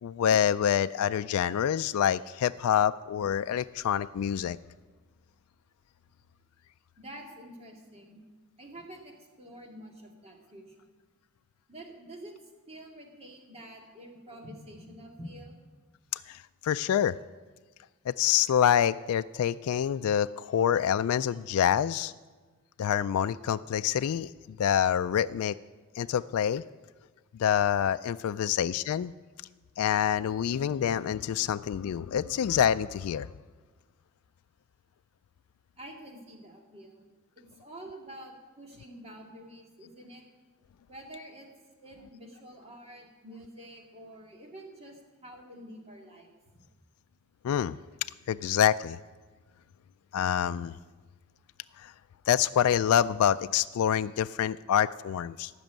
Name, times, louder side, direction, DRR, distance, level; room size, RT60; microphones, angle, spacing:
voice 1, 0.0-4.6 16.1-17.1 18.1-22.1 22.8-25.6 26.0-26.6 27.3-29.1 29.8-33.3 47.4-47.8 48.3-49.0 50.1-50.7 51.8-51.9 52.3-55.5, left 9 dB, 75° left, 12 dB, 0.3 m, -26 dB
voice 2, 7.0-8.2 8.6-10.9 11.7-12.3 12.7-15.6 35.8-37.0 37.4-40.2 40.9-41.5 41.8-46.7, right 1 dB, 30° right, 1 dB, 2.2 m, -47 dB
16.0 x 6.1 x 9.0 m, 1.3 s
head